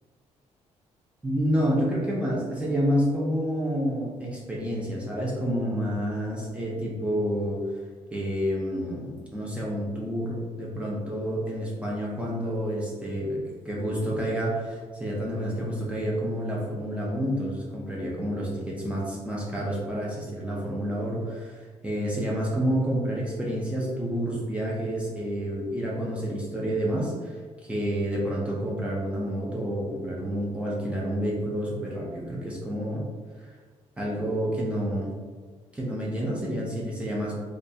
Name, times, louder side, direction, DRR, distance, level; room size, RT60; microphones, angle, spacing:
voice 1, 1.2-7.6 8.1-33.1 33.4-33.5 34.0-35.1 35.7-37.3, equal, 10° right, -5 dB, 0.4 m, -29 dB
2.3 x 2.2 x 2.6 m, 1.5 s
cardioid pair, 130°, 12 cm